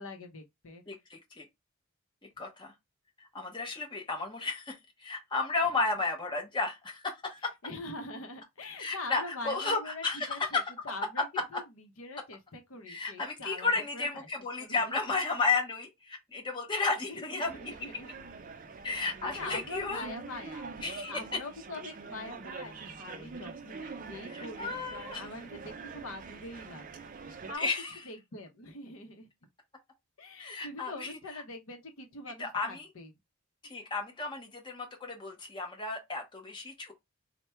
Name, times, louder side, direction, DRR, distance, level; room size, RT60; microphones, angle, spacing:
voice 1, 0.0-0.8 7.6-11.3 11.5-14.3 14.6-15.0 16.7-18.1 19.2-20.7 21.1-24.8 25.2-27.7 28.1-29.3 30.2-33.1, left 2 dB, 65° left, 0.7 m, -44 dB
voice 2, 0.9-1.4 2.4-2.7 3.3-7.5 8.8-10.6 11.2-11.3 11.5-11.6 12.9-17.9 18.8-20.1 20.8-21.4 24.3-25.3 27.5-28.0 30.4-31.4 32.4-32.9 33.6-36.9, left 3 dB, 20° left, 0.9 m, -33 dB
sound 1, 17.4-27.6, right 4 dB, 35° right, 0.4 m, -45 dB
3.3 x 2.2 x 4.3 m
head